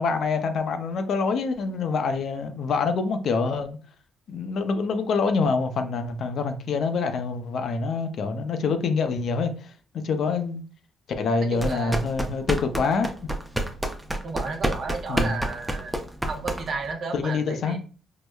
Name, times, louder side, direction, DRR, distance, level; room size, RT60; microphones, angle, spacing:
voice 1, 0.0-3.8 4.3-9.7 10.0-10.6 11.2-13.1 15.1-15.4 17.1-17.8, left 4 dB, 65° left, 0.5 m, -26 dB
sound 1, 11.5-16.9, right 1 dB, 5° right, 0.5 m, -29 dB
voice 2, 11.5-12.0 14.2-16.0 16.3-17.8, right 4 dB, 55° right, 0.5 m, -33 dB
4.6 x 2.1 x 2.2 m
cardioid pair, 90°, 0 cm